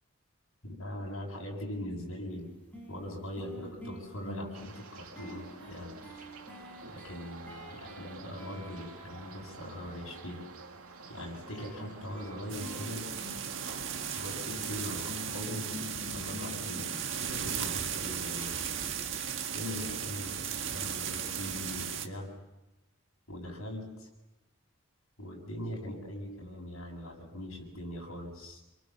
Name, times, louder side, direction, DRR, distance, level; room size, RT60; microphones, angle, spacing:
voice 1, 0.6-2.5 2.9-5.9 6.9-10.4 11.1-13.0 14.1-18.6 19.5-22.3 23.3-24.1 25.2-28.6, left 1 dB, 70° left, 1 dB, 7.9 m, -41 dB
sound 1, 2.3-2.4 2.7-10.0 11.5-17.4, left 2 dB, 5° left, 6.3 m, -47 dB
sound 2, 4.5-15.4, right 4 dB, 85° right, 2.4 m, -49 dB
sound 3, 12.5-22.1, right 8 dB, 60° right, 1.7 m, -36 dB
28.0 x 23.5 x 7.4 m, 1.0 s
head